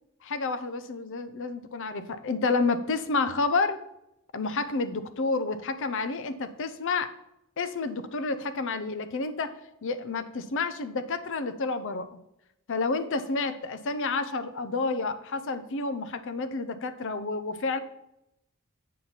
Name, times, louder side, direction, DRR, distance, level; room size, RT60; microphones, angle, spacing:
voice 1, 0.2-3.8 4.3-7.1 7.6-9.5 9.8-12.2 12.7-17.8, left 3 dB, 60° left, 10 dB, 0.6 m, -30 dB
8.5 x 7.5 x 4.1 m, 0.85 s
head